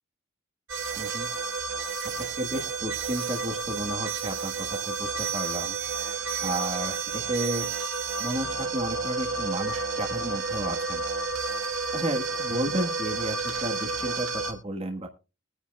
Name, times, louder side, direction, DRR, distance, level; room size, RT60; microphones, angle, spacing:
sound 1, 0.7-14.5, right 4 dB, 90° right, 1.7 m, -31 dB
voice 1, 1.0-1.3 2.4-4.5 4.9-5.8 6.4-7.6 8.2-11.0 11.9-13.4 13.6-15.1, right 1 dB, 30° right, 2 dB, 1.4 m, -32 dB
sound 2, 5.8-14.1, right 3 dB, 75° right, 3.2 m, -47 dB
21.5 x 9.9 x 2.3 m, 0.29 s
head